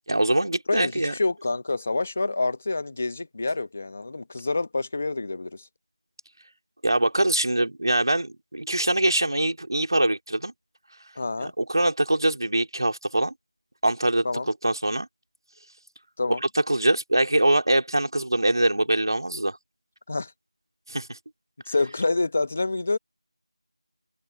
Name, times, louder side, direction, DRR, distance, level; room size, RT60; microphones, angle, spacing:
voice 1, 0.1-1.1 6.8-10.5 11.4-13.3 13.8-14.3 14.6-15.1 16.7-19.6 20.9-21.2, right 1 dB, 40° right, 3.8 m, -23 dB
voice 2, 0.7-5.7 11.2-11.5 14.2-14.5 16.2-16.4 20.1-20.3 21.7-23.0, left 3 dB, 15° left, 1.1 m, -27 dB
figure-of-eight pair, 180°, 3 cm